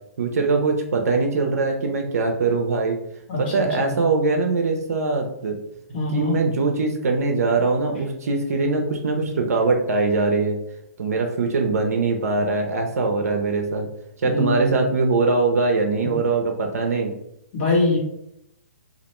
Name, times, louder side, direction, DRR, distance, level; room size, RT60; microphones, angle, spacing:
voice 1, 0.2-3.0 3.4-5.6 6.1-10.6 11.0-13.9 14.2-17.1, right 3 dB, 85° right, 2 dB, 0.4 m, -22 dB
voice 2, 3.3-3.9 5.9-6.4 14.2-14.8 16.0-16.1 17.5-18.0, left 2 dB, 45° left, -3 dB, 1.1 m, -23 dB
2.3 x 2.1 x 2.9 m, 0.79 s
hypercardioid pair, 150°, 8 cm